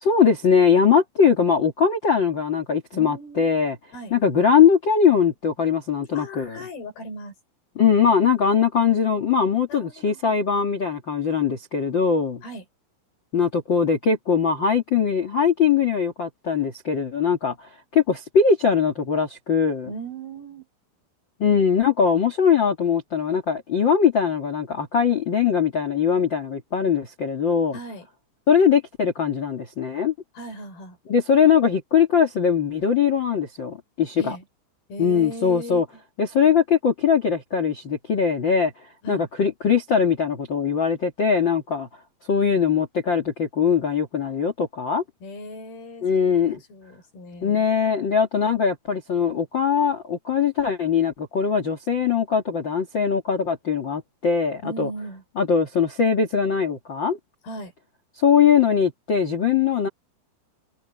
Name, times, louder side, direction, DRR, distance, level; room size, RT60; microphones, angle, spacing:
voice 1, 0.0-3.7 4.1-6.6 7.7-12.4 13.3-19.9 21.4-27.8 28.5-30.1 31.1-34.4 35.0-35.8 36.2-38.7 39.1-41.9 42.3-45.0 46.0-46.6 47.4-54.9 55.4-57.2 58.2-59.9, left 6 dB, 65° left, 1.1 m, -21 dB
voice 2, 2.9-3.5 3.9-4.1 6.1-7.3 9.7-10.4 12.4-12.7 19.9-20.7 27.7-28.1 30.3-31.0 34.2-34.5 34.9-36.0 39.0-39.3 45.2-47.6 54.6-55.2 57.4-57.7, right 1 dB, 50° left, 7.1 m, -37 dB
omnidirectional pair, 5.7 m